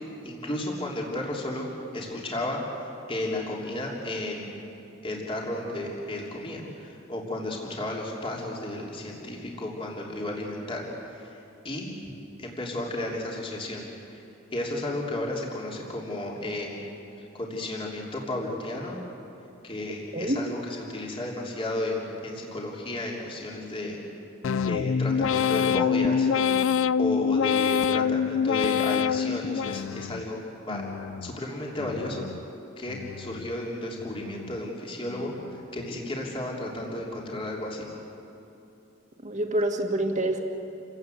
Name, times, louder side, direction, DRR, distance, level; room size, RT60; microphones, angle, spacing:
voice 1, 0.2-1.7 1.9-2.6 3.1-4.5 5.0-10.9 11.1-11.3 11.6-12.0 12.4-13.8 14.1-14.2 14.5-16.8 17.2-19.0 19.6-24.0 24.6-26.3 27.0-30.4 30.7-30.9 31.2-32.3 32.8-37.9, left 1 dB, 25° left, -2 dB, 3.2 m, -33 dB
sound 1, 24.4-30.3 30.7-31.3 31.8-32.4 32.9-33.5 34.0-34.6 35.1-35.6, left 7 dB, 70° left, 0.4 m, -26 dB
voice 2, 39.2-40.4, right 1 dB, 35° right, 4 dB, 2.0 m, -26 dB
28.5 x 18.0 x 7.9 m, 2.8 s
head